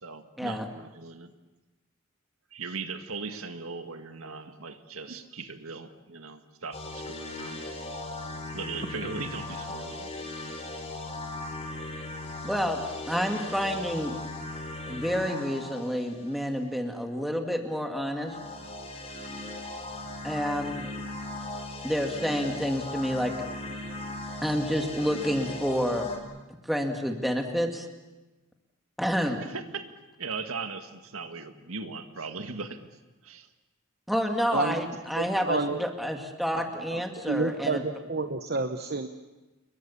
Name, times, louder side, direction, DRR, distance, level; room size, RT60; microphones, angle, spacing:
voice 1, 0.0-1.3 2.5-7.8 8.5-10.1 29.4-29.8 30.2-32.9 33.2-33.5, right 4 dB, 90° right, 7 dB, 1.9 m, -38 dB
sound 1, 6.7-16.8 18.2-26.2, left 2 dB, 30° left, 3.6 m, -38 dB
voice 2, 12.4-14.2 14.9-18.4 20.2-20.9 21.8-23.3 24.4-26.1 26.6-27.9 29.0-29.4 34.1-37.8, equal, ahead, 3 dB, 2.2 m, -29 dB
voice 3, 34.5-34.9 35.2-35.8 36.9-39.1, right 3 dB, 50° right, 7 dB, 1.0 m, -30 dB
29.0 x 22.5 x 7.2 m, 1.1 s
head